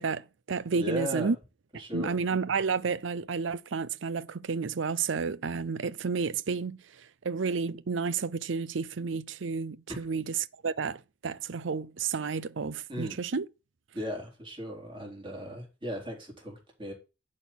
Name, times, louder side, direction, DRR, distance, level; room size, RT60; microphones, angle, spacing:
voice 1, 0.0-1.4 1.9-6.8 7.2-13.5, right 5 dB, 80° right, 0.6 m, -31 dB
voice 2, 0.8-1.3 1.8-2.2 12.9-13.2 13.9-16.9, equal, 25° right, 3.9 m, -36 dB
11.5 x 4.2 x 7.4 m
head